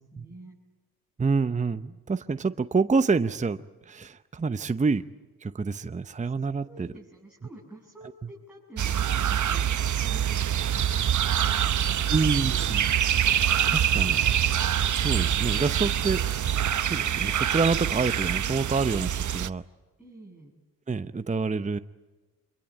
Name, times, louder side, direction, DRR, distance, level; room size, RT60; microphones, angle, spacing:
voice 1, 0.1-0.5 6.2-11.1 20.0-20.5, right 2 dB, 5° right, -3 dB, 6.9 m, -49 dB
voice 2, 1.2-3.6 3.9-5.0 5.4-6.9 12.1-12.9 13.7-14.2 15.0-16.2 16.9-19.6 20.9-21.8, right 4 dB, 20° right, 11 dB, 0.8 m, -27 dB
sound 1, 8.8-19.5, right 9 dB, 45° right, 0.9 m, -25 dB
26.5 x 22.5 x 8.5 m, 1.2 s
supercardioid pair, 65°, 41 cm